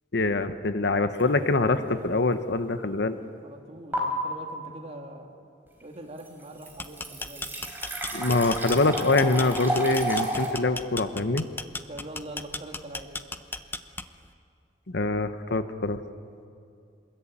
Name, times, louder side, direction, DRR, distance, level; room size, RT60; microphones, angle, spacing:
voice 1, 0.1-3.2 8.1-11.5 14.9-16.0, left 3 dB, 65° left, 10 dB, 1.1 m, -24 dB
sound 1, 1.1-1.4 1.9-2.0 3.9-4.0 5.8-5.9 6.2-10.5, right 1 dB, 10° right, 4.8 m, -32 dB
voice 2, 3.4-5.3 5.8-7.5 11.9-13.1, right 1 dB, 35° right, 2 dB, 2.7 m, -42 dB
sound 2, 6.7-14.3, left 3 dB, 10° left, 0.9 m, -36 dB
26.5 x 21.5 x 8.9 m, 2.4 s
head